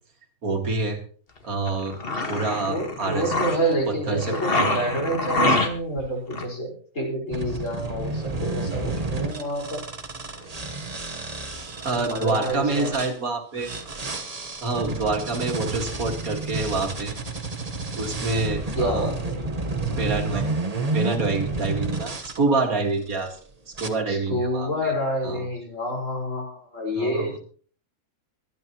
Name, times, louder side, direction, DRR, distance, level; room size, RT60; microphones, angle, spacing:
voice 1, 0.4-1.0 1.4-2.0 2.3-3.3 3.9-4.8 11.8-13.8 14.6-17.2 17.9-19.1 20.0-20.4 20.9-23.4 23.7-24.9 25.2-25.5 26.9-27.4, right 3 dB, 65° right, 3 dB, 2.4 m, -27 dB
sound 1, 1.7-3.7 4.2-6.0 6.3-6.4, left 2 dB, 40° left, 1.7 m, -25 dB
voice 2, 2.7-9.9 12.0-12.9 18.7-19.4 24.1-27.4, right 1 dB, 55° left, 0 dB, 5.1 m, -28 dB
sound 2, 7.3-13.1 13.6-22.4 23.0-23.3 23.7-23.9, right 3 dB, 30° right, 1.1 m, -30 dB
24.0 x 9.6 x 3.0 m, 0.43 s
omnidirectional pair, 1.6 m